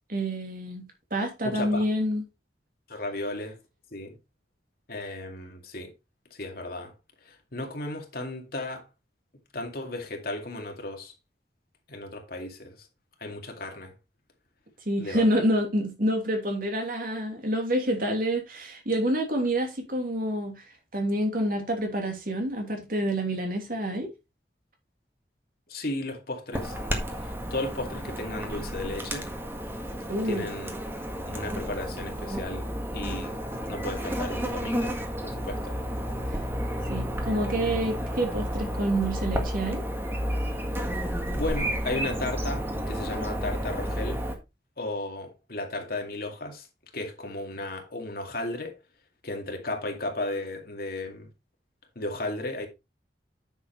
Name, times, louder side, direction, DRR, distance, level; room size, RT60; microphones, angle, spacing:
voice 1, 0.1-0.8 1.1-2.2 14.9-20.6 20.9-24.1 30.1-30.5 36.9-39.8, right 1 dB, 55° right, 2.9 m, -27 dB
voice 2, 1.4-1.8 2.9-3.6 3.9-4.2 4.9-5.9 6.3-6.9 7.3-8.9 9.5-11.1 11.9-12.9 13.2-13.9 15.0-15.3 25.7-26.8 27.2-29.3 30.2-30.7 31.3-33.4 33.7-35.8 41.3-44.2 44.8-46.7 46.9-48.8 49.2-51.3 52.0-52.7, left 2 dB, 60° left, 2.3 m, -35 dB
Chirp tweet / Buzz, 26.5-44.4, equal, 15° right, 1.8 m, -31 dB
9.7 x 7.0 x 3.2 m
head